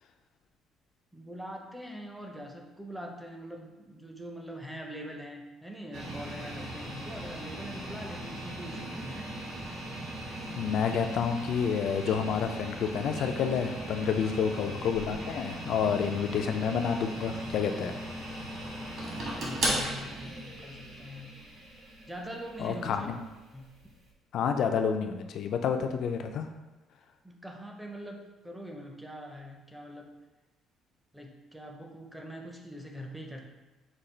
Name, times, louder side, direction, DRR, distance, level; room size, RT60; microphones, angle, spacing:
voice 1, 1.1-9.4 14.2-14.4 19.4-21.4 22.1-23.2 23.5-23.7 27.2-30.1 31.1-33.5, equal, 5° right, 2 dB, 0.5 m, -43 dB
sound 1, 5.9-24.0, right 1 dB, 60° right, 1.5 m, -38 dB
voice 2, 10.5-18.0 22.6-23.1 24.3-26.5, left 7 dB, 60° left, 6 dB, 0.4 m, -29 dB
5.1 x 2.3 x 4.3 m, 1.1 s
cardioid pair, 140°, 0 cm